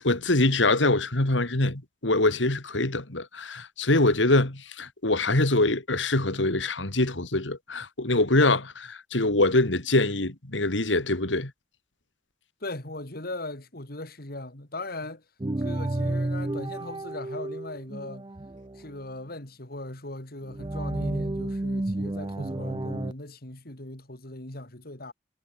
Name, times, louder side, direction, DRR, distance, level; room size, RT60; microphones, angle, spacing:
voice 1, 0.0-11.5, left 2 dB, 90° left, 2.8 m, -24 dB
voice 2, 12.6-15.3 15.6-18.3 18.7-25.1, left 2 dB, 55° left, 3.5 m, -39 dB
sound 1, 15.4-18.9 20.5-23.1, right 1 dB, 25° right, 0.6 m, -31 dB
head